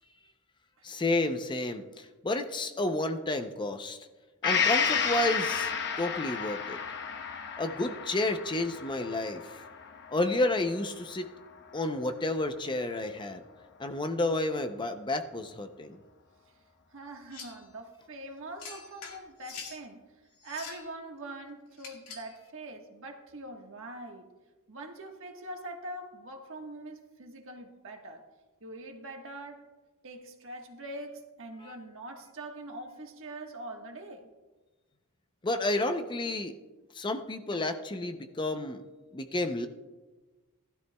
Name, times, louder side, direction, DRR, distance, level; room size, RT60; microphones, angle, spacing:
voice 1, 0.8-4.0 4.4-5.7 6.0-6.8 7.6-9.6 10.1-11.3 11.7-13.4 13.8-16.0 31.6-31.7 35.4-36.5 36.9-38.8 39.1-39.7, left 2 dB, 20° left, 7 dB, 0.6 m, -31 dB
Gong, 4.4-12.1 12.5-12.6, left 6 dB, 55° left, 0.9 m, -32 dB
voice 2, 16.9-20.0 20.4-24.3 24.7-28.2 28.6-29.6 30.0-34.3, right 2 dB, 60° right, 2 dB, 1.4 m, -43 dB
sound 1, 17.3-17.6 18.6-19.8 20.4-20.9 21.8-22.3, left 5 dB, 80° left, 2.0 m, -45 dB
18.5 x 12.5 x 2.3 m, 1.2 s
head